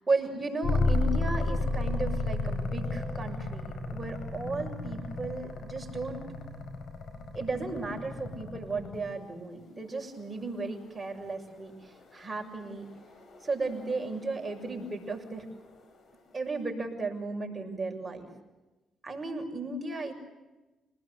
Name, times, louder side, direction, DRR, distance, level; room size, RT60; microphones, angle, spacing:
voice 1, 0.0-6.3 7.3-12.9 13.4-15.5 16.3-18.3 19.0-20.1, right 3 dB, 20° right, 2 dB, 7.0 m, -35 dB
sound 1, 0.6-9.2 11.4-16.0, left 2 dB, 60° left, 5.7 m, -33 dB
27.5 x 20.0 x 8.1 m, 1.1 s
cardioid pair, 90°, 0 cm